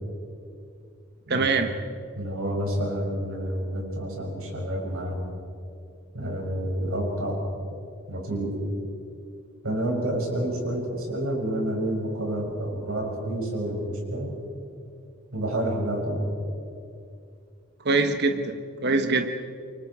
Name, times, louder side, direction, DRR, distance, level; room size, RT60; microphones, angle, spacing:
voice 1, 1.3-1.7 17.8-19.3, right 3 dB, 50° right, 7 dB, 1.1 m, -23 dB
voice 2, 2.1-5.2 6.1-7.4 8.1-8.5 9.6-14.3 15.3-16.3, right 1 dB, 85° right, -1 dB, 6.8 m, -29 dB
28.0 x 24.5 x 4.9 m, 2.5 s
head